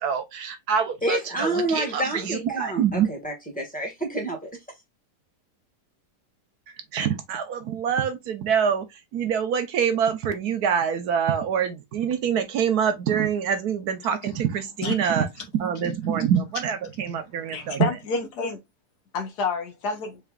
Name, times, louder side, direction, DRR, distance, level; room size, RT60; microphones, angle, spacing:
voice 1, 0.0-3.1 6.9-15.3 15.5-17.9, right 7 dB, 70° right, 1.2 m, -25 dB
voice 2, 1.0-4.5, right 1 dB, 5° left, 1.2 m, -28 dB
voice 3, 17.5-18.6 19.1-20.2, left 4 dB, 75° left, 1.6 m, -28 dB
4.8 x 3.3 x 2.3 m
omnidirectional pair, 1.8 m